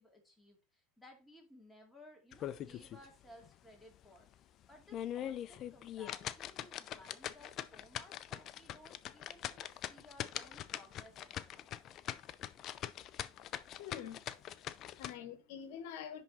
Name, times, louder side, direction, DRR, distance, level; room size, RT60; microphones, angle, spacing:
voice 1, 0.0-11.7, left 1 dB, 5° left, 2.3 m, -59 dB
sound 1, 2.3-3.1 3.4-3.5 4.0-4.1 4.7-15.1, left 11 dB, 40° left, 0.5 m, -42 dB
voice 2, 13.8-16.2, left 9 dB, 70° left, 1.3 m, -47 dB
10.5 x 3.6 x 4.2 m
supercardioid pair, 125°, 0 cm